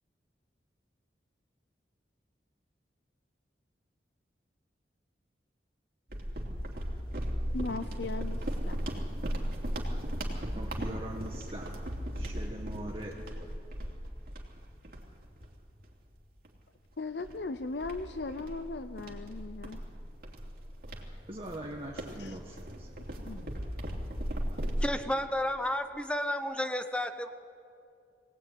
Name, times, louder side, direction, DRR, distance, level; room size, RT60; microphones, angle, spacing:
sound 1, 6.1-16.0 16.4-16.6 17.2-24.9, equal, 55° right, 3.0 m, -37 dB
voice 1, 7.5-8.8 17.0-19.8 22.2-22.4 23.2-23.6, left 3 dB, 70° left, 10 dB, 0.6 m, -38 dB
voice 2, 10.5-11.7 12.1-13.1 21.3-22.9, right 1 dB, 30° right, -1 dB, 1.6 m, -41 dB
voice 3, 24.8-27.3, left 1 dB, 5° left, 8 dB, 0.8 m, -32 dB
22.0 x 18.5 x 9.3 m, 2.5 s
head